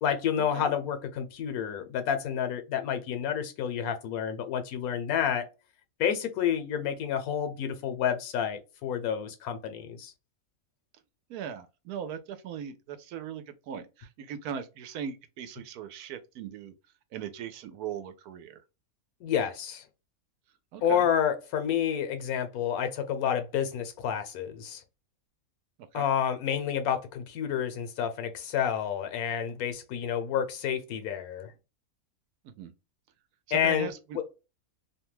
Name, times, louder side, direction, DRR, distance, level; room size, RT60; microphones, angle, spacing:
voice 1, 0.0-5.5 6.0-10.1 19.2-19.8 20.8-24.8 25.9-31.5 33.5-33.9, left 8 dB, 80° left, 1.1 m, -29 dB
voice 2, 11.3-16.7 17.1-18.6 20.7-21.1 25.9-26.1 32.4-32.7 33.5-34.2, right 8 dB, 90° right, 1.1 m, -39 dB
2.8 x 2.2 x 3.0 m
omnidirectional pair, 1.6 m